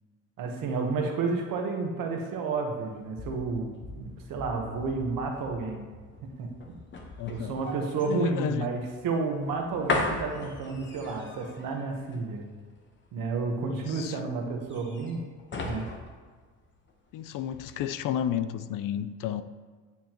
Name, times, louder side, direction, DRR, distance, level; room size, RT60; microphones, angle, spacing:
voice 1, 0.4-5.9 6.2-6.5 7.3-12.4 13.1-15.3 15.6-15.9, right 4 dB, 75° right, 2 dB, 1.3 m, -31 dB
sound 1, 2.8-17.1 17.5-17.7, left 3 dB, 35° left, 1.1 m, -38 dB
voice 2, 7.2-7.6 8.1-8.7 13.7-14.2 17.1-19.4, left 10 dB, 70° left, 13 dB, 0.5 m, -32 dB
9.4 x 7.1 x 3.0 m, 1.5 s
cardioid pair, 140°, 34 cm